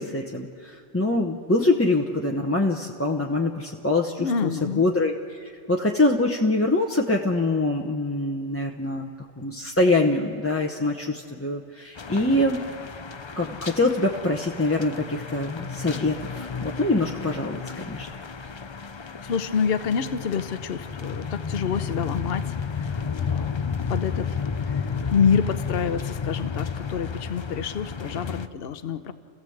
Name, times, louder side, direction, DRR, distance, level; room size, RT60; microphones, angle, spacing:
voice 1, 0.0-4.5 4.8-9.1 9.4-12.7 13.3-18.1, left 2 dB, 15° left, 0 dB, 0.8 m, -24 dB
voice 2, 4.2-4.8 19.2-22.6 23.2-24.3 24.7-24.8 25.1-29.1, left 6 dB, 55° left, 10 dB, 1.0 m, -27 dB
sound 1, 12.0-28.5, left 6 dB, 40° left, 0.4 m, -32 dB
30.0 x 15.5 x 7.9 m, 2.3 s
omnidirectional pair, 1.3 m